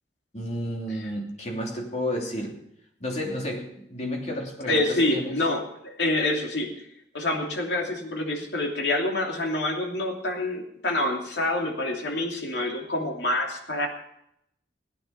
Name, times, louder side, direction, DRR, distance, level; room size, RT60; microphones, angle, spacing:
voice 1, 0.3-2.6 3.0-5.3, left 1 dB, 40° left, 0 dB, 3.0 m, -31 dB
voice 2, 4.7-6.7 7.1-13.9, left 2 dB, 75° left, 1 dB, 2.9 m, -27 dB
17.5 x 10.0 x 5.8 m, 0.76 s
head